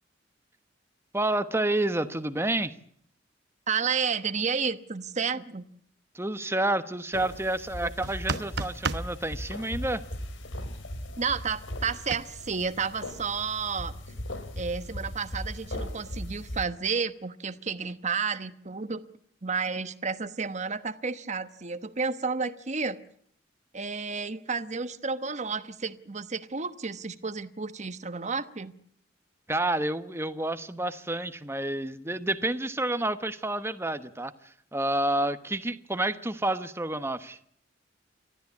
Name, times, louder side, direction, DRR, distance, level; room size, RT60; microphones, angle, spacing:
voice 1, 1.1-2.7 6.1-10.0 29.5-34.3 34.7-37.4, right 1 dB, 15° right, 11 dB, 1.1 m, -29 dB
voice 2, 3.7-5.6 7.8-7.9 11.2-13.9 14.6-19.0 19.4-23.0 23.7-28.7, right 5 dB, 40° right, 11 dB, 1.1 m, -31 dB
sound 1, 7.1-16.6, left 1 dB, 80° left, 3.3 m, -38 dB
sound 2, 8.0-9.1 12.1-12.2, right 4 dB, 60° right, 1.0 m, -31 dB
30.0 x 13.5 x 8.5 m, 0.65 s
head